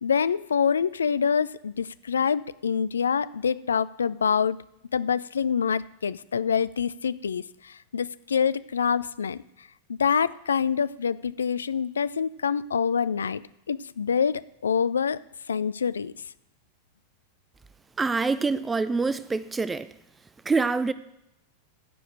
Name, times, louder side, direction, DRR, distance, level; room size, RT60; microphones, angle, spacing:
voice 1, 0.0-4.6 4.9-9.4 9.9-13.4 13.7-15.2 15.5-16.1, left 7 dB, 70° left, 17 dB, 0.4 m, -26 dB
voice 2, 18.0-19.9 20.5-20.9, right 4 dB, 15° right, 15 dB, 0.4 m, -25 dB
14.5 x 4.9 x 9.0 m, 0.83 s
figure-of-eight pair, 90°, 0 cm